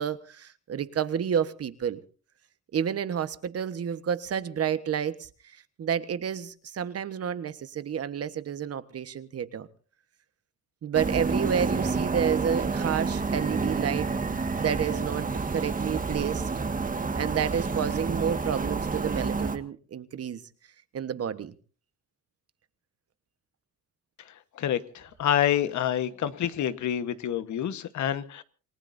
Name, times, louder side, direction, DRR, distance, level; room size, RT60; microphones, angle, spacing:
voice 1, 0.0-2.0 2.7-5.3 5.8-9.7 10.8-14.1 14.6-16.4 17.2-20.4 20.9-21.5, right 8 dB, 50° right, 1.3 m, -30 dB
sound 1, 10.9-19.6, right 4 dB, 25° right, 1.8 m, -29 dB
voice 2, 24.5-28.4, left 10 dB, 70° left, 1.4 m, -27 dB
28.5 x 19.0 x 2.7 m
cardioid pair, 90°, 30 cm